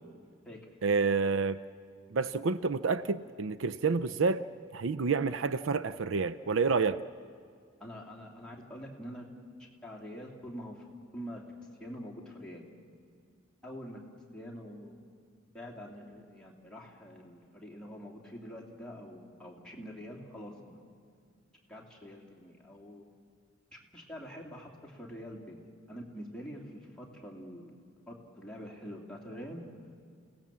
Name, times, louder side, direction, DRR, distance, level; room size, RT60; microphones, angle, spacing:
voice 1, 0.8-1.6 2.1-4.4 4.7-7.0, right 4 dB, 70° right, 14 dB, 0.5 m, -29 dB
voice 2, 7.8-9.2 9.8-10.8 11.1-11.4 11.8-12.6 13.6-14.0 14.3-15.0 15.5-20.9 21.7-23.0 23.9-25.6 25.9-27.7 28.1-29.6, equal, 5° left, -3 dB, 2.8 m, -45 dB
29.5 x 17.5 x 7.5 m, 2.2 s
head